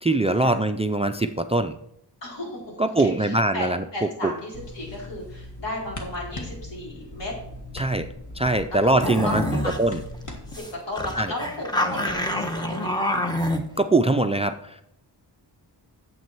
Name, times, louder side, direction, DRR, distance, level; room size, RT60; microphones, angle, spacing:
voice 1, 0.0-1.7 2.8-3.8 4.2-4.3 7.7-8.1 8.4-9.4 9.8-10.0 11.2-11.3 13.8-14.8, right 2 dB, 15° right, 10 dB, 0.3 m, -22 dB
voice 2, 2.2-7.3 8.7-8.8 9.0-9.8 10.5-12.9, left 1 dB, 80° left, -4 dB, 4.4 m, -34 dB
sound 1, 4.5-10.6, left 1 dB, 45° left, 1.6 m, -40 dB
sound 2, 9.0-9.8 10.1-10.2 10.5-10.7 11.0-13.6, left 1 dB, 10° left, 1.0 m, -26 dB
9.3 x 7.7 x 4.5 m, 0.78 s
wide cardioid pair, 160°, 42 cm